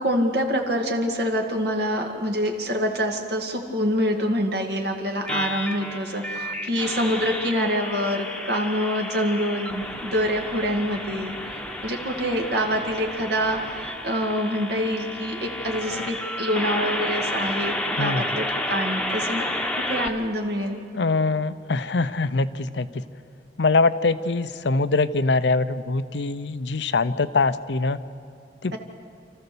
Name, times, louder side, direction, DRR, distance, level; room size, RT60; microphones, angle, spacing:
voice 1, 0.0-11.4 11.8-19.5 19.8-20.8 28.7-28.8, equal, 65° right, 2 dB, 2.1 m, -26 dB
sound 1, 5.3-20.1, left 1 dB, 5° left, 1.1 m, -31 dB
voice 2, 20.9-23.0 23.6-28.0 28.6-28.8, left 3 dB, 75° left, 13 dB, 0.7 m, -23 dB
28.5 x 14.5 x 7.0 m, 2.5 s
head